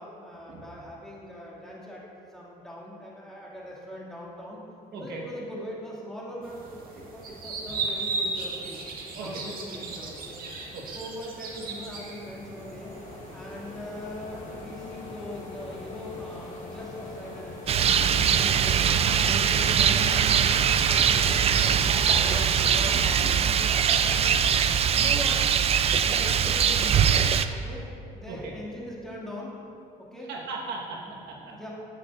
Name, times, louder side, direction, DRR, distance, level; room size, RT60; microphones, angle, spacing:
voice 1, 0.0-2.0 2.3-4.6 4.9-8.8 9.1-10.4 10.9-12.9 13.3-18.9 19.2-20.5 20.8-21.8 22.1-23.6 24.0-24.2 24.9-25.4 25.9-29.5 30.0-30.3 31.4-31.7, equal, 5° left, -6 dB, 2.1 m, -41 dB
voice 2, 4.9-5.3 9.1-9.4 10.7-10.9 21.9-22.4 23.1-23.4 23.7-24.2 28.3-28.5 30.3-31.6, right 4 dB, 80° right, -1 dB, 1.3 m, -38 dB
sound 1, 6.4-21.2, right 3 dB, 60° right, 1.6 m, -39 dB
sound 2, 11.5-24.1 24.6-25.7, left 3 dB, 45° left, 1.3 m, -43 dB
Rain, 17.7-27.5, right 8 dB, 35° right, 0.4 m, -22 dB
15.0 x 6.6 x 2.5 m, 2.6 s
cardioid pair, 110°, 17 cm